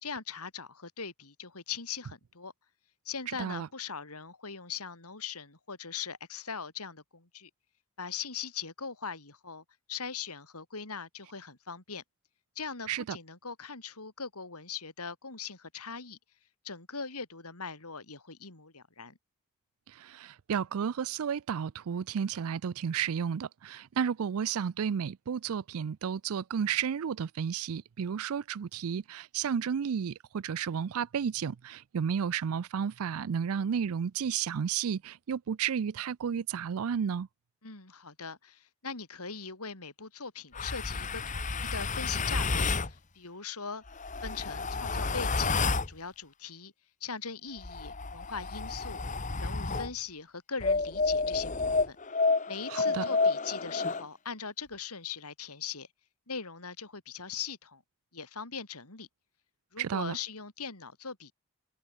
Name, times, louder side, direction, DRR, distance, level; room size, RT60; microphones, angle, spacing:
voice 1, 0.0-2.5 3.1-7.5 8.0-12.0 12.6-16.2 16.6-19.2 37.6-43.8 44.2-46.7 47.0-49.0 49.4-52.0 52.5-55.9 56.3-57.8 58.1-59.1 59.7-61.3, left 6 dB, 90° left, 4.0 m, -40 dB
voice 2, 20.0-37.3 52.7-53.1 59.8-60.2, right 7 dB, 75° right, 0.4 m, -32 dB
sound 1, 40.5-42.9 43.9-45.9 47.6-49.9 50.6-54.0, left 3 dB, 35° left, 1.2 m, -30 dB
open air
head